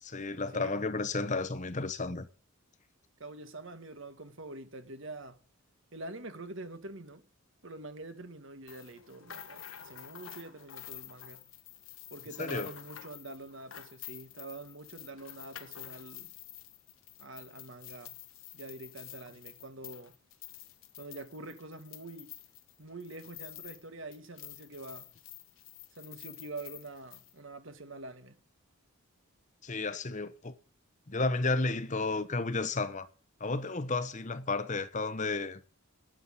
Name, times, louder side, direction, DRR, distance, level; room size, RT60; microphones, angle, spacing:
voice 1, 0.0-2.3 12.4-12.7 29.6-30.5 31.1-33.1 33.4-35.6, left 3 dB, 35° left, 0.9 m, -32 dB
voice 2, 3.2-5.4 5.9-7.2 7.6-11.5 12.1-16.3 17.2-18.2 18.5-20.1 21.0-22.3 22.8-25.1 26.0-28.4, right 2 dB, 60° right, 1.6 m, -45 dB
sound 1, 8.7-23.9 24.1-27.3, left 12 dB, 70° left, 1.2 m, -49 dB
11.5 x 7.4 x 8.4 m
head